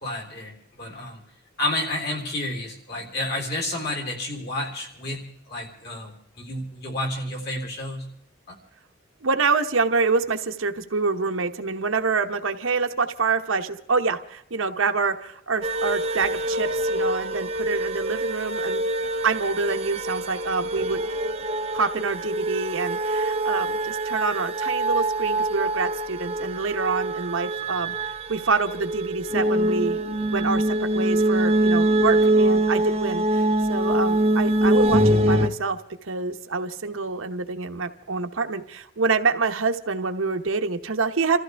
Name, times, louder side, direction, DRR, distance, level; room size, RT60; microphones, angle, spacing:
voice 1, 0.0-1.2 1.6-8.1 8.5-8.6, left 1 dB, 50° left, 1 dB, 3.7 m, -30 dB
voice 2, 9.2-18.9 19.2-21.0 21.7-30.0 30.3-35.8 36.0-41.4, right 4 dB, 75° right, 7 dB, 1.0 m, -26 dB
sound 1, 15.6-35.5, right 1 dB, 30° right, 0.6 m, -24 dB
28.0 x 14.5 x 3.4 m, 0.73 s
head